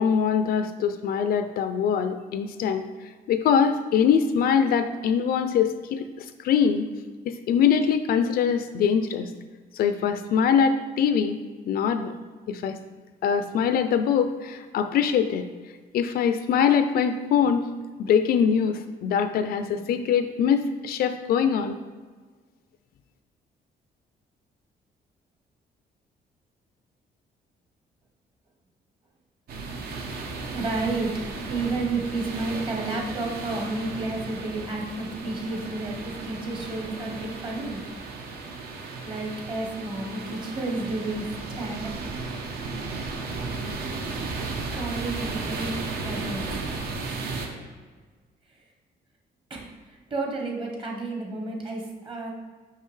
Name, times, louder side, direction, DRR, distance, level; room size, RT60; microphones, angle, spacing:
voice 1, 0.0-2.9 3.3-6.9 7.3-9.3 9.7-11.4 11.7-12.1 12.5-12.8 13.2-15.4 15.9-17.7 18.0-21.8, left 7 dB, 60° left, 9 dB, 0.4 m, -23 dB
sound 1, 29.5-47.5, right 3 dB, 65° right, 0.8 m, -35 dB
voice 2, 30.5-31.1 31.5-37.8 39.0-41.2 41.5-42.2 44.7-46.4 49.5-52.3, right 3 dB, 30° right, 0 dB, 1.1 m, -31 dB
5.8 x 5.5 x 3.2 m, 1.4 s
cardioid pair, 170°, 17 cm